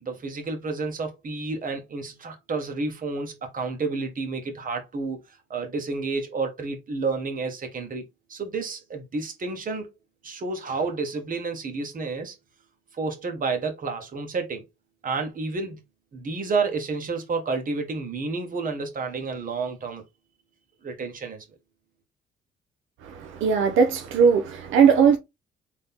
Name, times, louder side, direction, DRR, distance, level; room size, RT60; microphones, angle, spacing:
voice 1, 0.0-5.2 5.5-9.9 10.2-12.3 13.0-14.6 15.0-15.8 16.1-20.0 20.8-21.4, right 4 dB, 45° right, 1.5 m, -30 dB
voice 2, 23.0-25.2, right 6 dB, 85° right, 0.8 m, -19 dB
4.0 x 3.2 x 3.6 m
cardioid pair, 90°, 20 cm